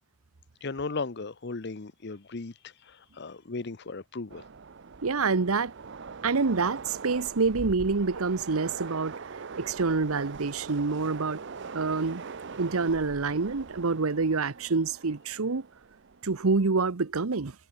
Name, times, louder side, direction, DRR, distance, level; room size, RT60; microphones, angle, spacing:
voice 1, 0.6-4.5, left 3 dB, 50° left, 0.8 m, -36 dB
Train, 4.3-16.6, right 5 dB, 55° right, 0.7 m, -42 dB
voice 2, 5.0-5.7 6.2-9.2 9.5-11.4 11.7-12.2 12.6-15.6 16.2-17.5, right 4 dB, 85° right, 0.9 m, -27 dB
head